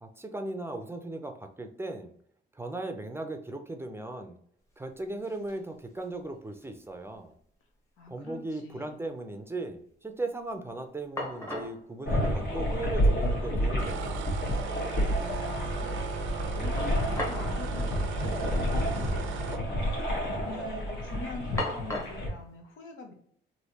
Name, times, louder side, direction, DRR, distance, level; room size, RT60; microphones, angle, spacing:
voice 1, 0.0-2.1 2.5-4.4 4.8-7.3 8.1-14.4, right 2 dB, 10° right, 5 dB, 0.5 m, -37 dB
sound 1, 4.7-4.8 5.0-5.6 6.0-6.9 7.1-7.2 10.7-10.8 11.2-11.8 12.9-13.0 13.4-13.5 16.8-17.5 17.8-17.9 18.8-19.1 19.4-19.9 20.3-20.7 21.6-22.3, left 1 dB, 15° left, 1.0 m, -37 dB
voice 2, 8.0-8.9 15.2-16.1 16.5-19.6 20.3-23.1, left 3 dB, 85° left, 4 dB, 0.9 m, -44 dB
sound 2, 12.0-22.3, equal, 55° left, 1.4 m, -30 dB
sound 3, 13.8-19.6, right 4 dB, 75° right, 0.5 m, -35 dB
3.2 x 2.7 x 2.8 m, 0.63 s
cardioid pair, 90°, 20 cm